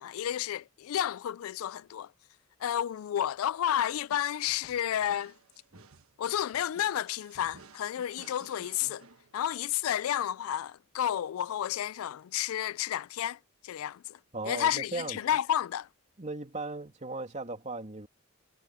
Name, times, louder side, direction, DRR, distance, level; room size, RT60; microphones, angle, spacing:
voice 1, 0.0-2.1 2.6-5.3 6.2-9.1 9.3-13.4 13.6-14.2 14.5-15.9, left 10 dB, 75° left, 0.3 m, -31 dB
sound 1, 3.9-9.8, right 4 dB, 85° right, 1.3 m, -56 dB
voice 2, 14.3-15.2 16.2-18.1, right 2 dB, 35° right, 2.6 m, -37 dB
head